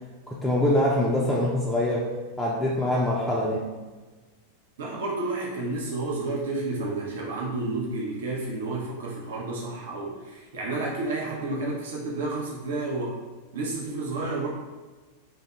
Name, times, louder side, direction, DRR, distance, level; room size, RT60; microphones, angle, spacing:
voice 1, 0.3-2.1 2.4-3.6, left 1 dB, 5° left, -5 dB, 0.5 m, -24 dB
voice 2, 4.8-13.2 13.5-14.5, right 2 dB, 60° right, -3 dB, 0.6 m, -31 dB
4.1 x 2.7 x 2.2 m, 1.3 s
figure-of-eight pair, 90°, 0 cm